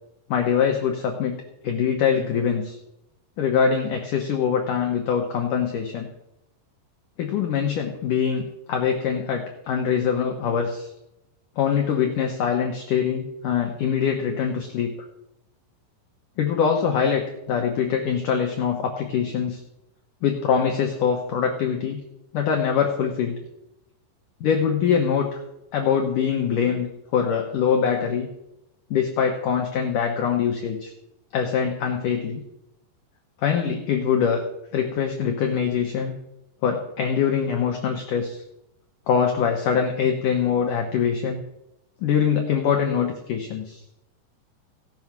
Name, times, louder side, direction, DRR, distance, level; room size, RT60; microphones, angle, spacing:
voice 1, 0.3-2.8 3.4-6.1 7.2-10.9 11.6-14.9 16.4-19.6 20.2-22.0 22.3-23.3 24.4-25.4 25.7-26.9 27.1-28.3 28.9-30.9 31.3-32.4 33.4-34.4 34.7-36.2 36.6-38.4 39.1-41.4 42.0-43.8, left 7 dB, 75° left, 2 dB, 1.9 m, -23 dB
17.5 x 6.4 x 6.0 m, 0.88 s
omnidirectional pair, 5.3 m